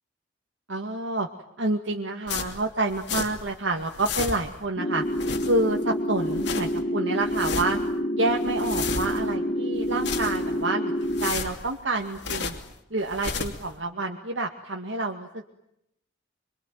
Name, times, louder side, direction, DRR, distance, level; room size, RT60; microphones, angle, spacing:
voice 1, 0.7-1.3 1.6-5.0 5.4-7.8 8.1-10.9 11.2-12.5 12.9-15.5, right 2 dB, 75° right, 2 dB, 2.2 m, -28 dB
sound 1, 2.3-3.6 3.8-4.6 5.0-5.8 6.2-6.8 7.2-7.9 8.3-9.3 9.8-10.6 11.0-12.7 13.0-13.7, left 5 dB, 60° left, 2.9 m, -33 dB
sound 2, 4.8-11.3, equal, 35° left, 1.8 m, -28 dB
26.0 x 24.5 x 9.4 m, 0.80 s
head